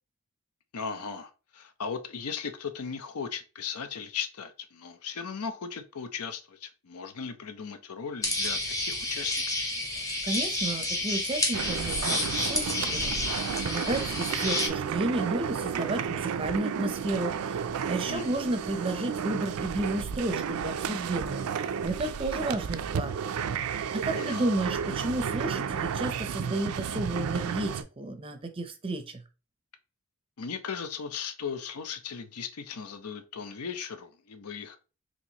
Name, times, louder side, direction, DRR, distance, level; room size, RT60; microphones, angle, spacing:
voice 1, 0.7-9.3 18.1-18.4 24.1-24.5 30.4-34.8, left 6 dB, 85° left, 0.6 m, -37 dB
sound 1, 8.2-14.7, left 1 dB, 15° left, 0.7 m, -30 dB
voice 2, 10.0-23.5 23.9-29.2, right 2 dB, 25° right, 0.5 m, -32 dB
sound 2, 11.5-27.8, right 7 dB, 80° right, 0.4 m, -32 dB
4.4 x 2.9 x 2.8 m
head